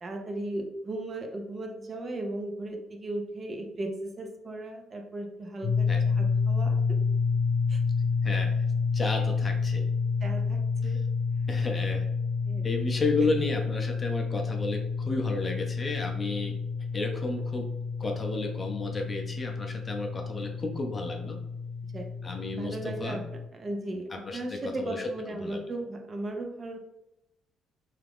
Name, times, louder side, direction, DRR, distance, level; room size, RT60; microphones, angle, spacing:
voice 1, 0.0-7.0 7.7-7.8 10.2-11.0 11.4-11.6 12.5-12.9 13.2-13.3 21.9-22.1 22.5-23.2 23.5-26.8, right 1 dB, 35° right, 3 dB, 0.5 m, -36 dB
sound 1, 5.6-23.5, left 5 dB, 45° left, 0.9 m, -29 dB
voice 2, 8.2-8.5 8.9-9.9 10.8-11.0 11.5-12.1 12.6-16.5 16.9-17.7 18.0-21.4 22.2-23.2 24.1-25.6, left 3 dB, 25° left, 2 dB, 0.5 m, -32 dB
2.9 x 2.4 x 3.5 m, 0.90 s
cardioid pair, 120°, 0 cm